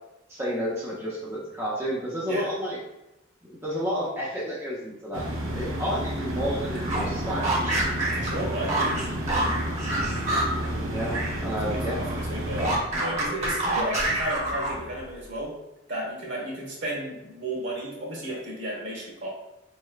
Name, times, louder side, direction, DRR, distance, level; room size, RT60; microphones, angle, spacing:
voice 1, 0.3-2.8 3.4-7.8 10.9-12.0, equal, 15° right, -6 dB, 0.5 m, -31 dB
sound 1, 5.1-12.8, right 1 dB, 80° right, 0.7 m, -31 dB
voice 2, 5.5-5.8 8.2-8.9 11.6-15.5 15.9-19.3, right 1 dB, 60° right, -2 dB, 1.3 m, -33 dB
sound 2, 6.7-11.4 11.7-15.0, right 1 dB, 35° right, 0.9 m, -28 dB
4.6 x 3.1 x 2.3 m, 0.93 s
head